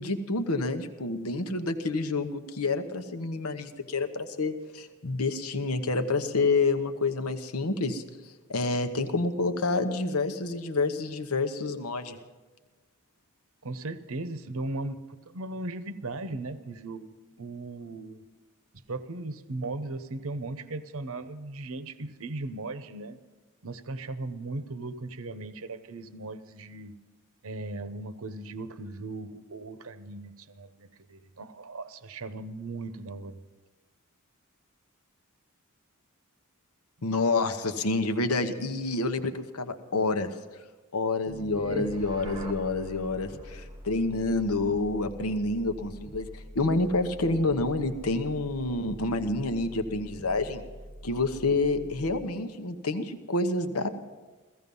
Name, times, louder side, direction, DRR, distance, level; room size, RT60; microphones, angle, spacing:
voice 1, 0.0-8.0 8.5-12.2 37.0-40.3 40.9-50.6 51.0-53.9, left 3 dB, 85° left, 8 dB, 1.0 m, -28 dB
voice 2, 13.6-18.2 18.9-23.2 23.6-27.0 27.4-33.4, right 2 dB, 70° right, 12 dB, 0.8 m, -37 dB
sound 1, 41.3-52.4, right 1 dB, 20° right, 0.9 m, -44 dB
16.0 x 15.5 x 5.5 m, 1.2 s
head